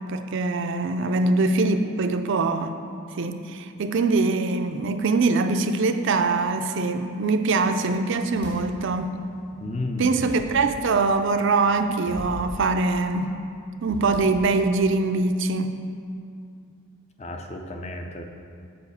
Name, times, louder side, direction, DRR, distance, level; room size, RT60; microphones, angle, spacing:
voice 1, 0.1-2.7 3.2-9.2 10.0-13.4 13.8-15.8, right 3 dB, 55° right, 7 dB, 0.4 m, -23 dB
sound 1, 7.5-9.0 9.4-14.7, equal, 50° left, 1.9 m, -42 dB
voice 2, 9.6-10.2 17.2-18.2, left 2 dB, 30° left, 4 dB, 0.5 m, -32 dB
7.0 x 4.9 x 7.0 m, 2.3 s
head